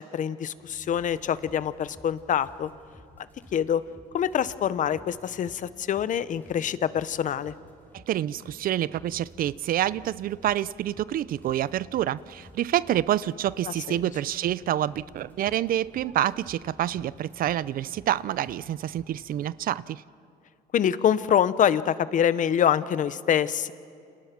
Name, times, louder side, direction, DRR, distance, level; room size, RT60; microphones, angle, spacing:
voice 1, 0.0-2.7 3.5-3.8 4.1-7.5 13.7-14.0 20.7-23.7, left 9 dB, 50° left, 1.0 m, -25 dB
sound 1, 0.6-19.5, left 1 dB, 10° left, 5.6 m, -53 dB
voice 2, 7.9-20.0, right 12 dB, 60° right, 0.6 m, -27 dB
29.5 x 27.0 x 6.0 m
cardioid pair, 110°, 17 cm